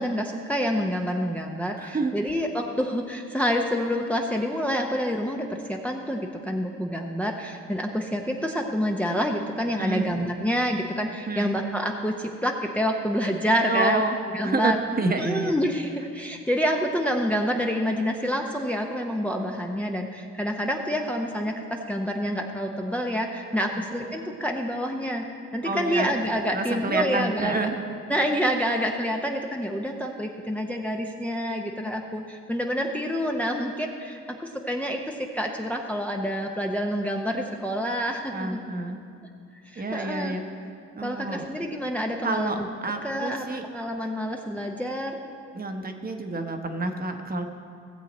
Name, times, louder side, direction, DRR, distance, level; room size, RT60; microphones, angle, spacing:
voice 1, 0.0-14.0 14.3-14.8 15.2-25.2 25.5-27.7 28.1-38.6 39.7-40.3 41.0-45.2, equal, 5° left, 1 dB, 0.7 m, -27 dB
voice 2, 1.8-2.1 9.8-10.1 11.3-11.6 13.7-14.2 14.4-15.5 23.7-23.8 25.6-26.2 26.5-27.7 38.3-39.0 39.8-40.4 41.0-41.5 42.2-43.6 45.5-47.4, right 3 dB, 30° right, 5 dB, 1.0 m, -28 dB
16.5 x 7.3 x 4.2 m, 2.3 s
cardioid pair, 90°, 30 cm